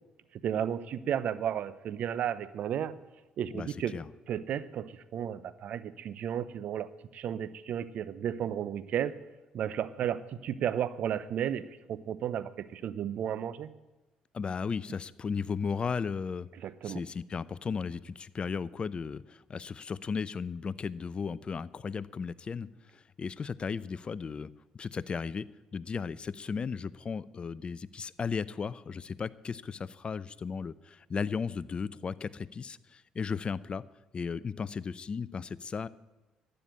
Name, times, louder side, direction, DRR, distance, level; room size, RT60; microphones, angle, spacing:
voice 1, 0.4-3.0 3.4-3.9 4.3-9.2 9.5-13.7 16.6-17.0, right 9 dB, 60° right, 16 dB, 0.8 m, -33 dB
voice 2, 3.5-4.1 14.3-16.5 16.8-25.5 25.7-33.8 34.1-35.9, left 5 dB, 40° left, 18 dB, 0.6 m, -35 dB
12.0 x 9.9 x 8.8 m, 1.1 s
hypercardioid pair, 65°, 3 cm